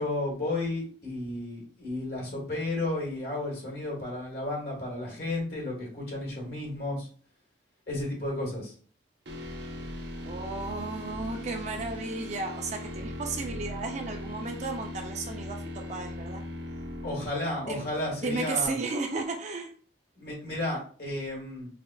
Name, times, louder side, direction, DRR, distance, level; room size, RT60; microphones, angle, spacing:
voice 1, 0.0-7.1 7.9-8.7 17.0-18.7 20.2-21.7, left 2 dB, 55° left, -3 dB, 1.5 m, -33 dB
sound 1, 9.3-19.2, left 1 dB, 65° right, 0.7 m, -39 dB
voice 2, 10.3-16.4 17.6-17.9 18.2-19.7, right 3 dB, 35° right, 3 dB, 0.4 m, -34 dB
4.9 x 2.3 x 2.2 m, 0.43 s
head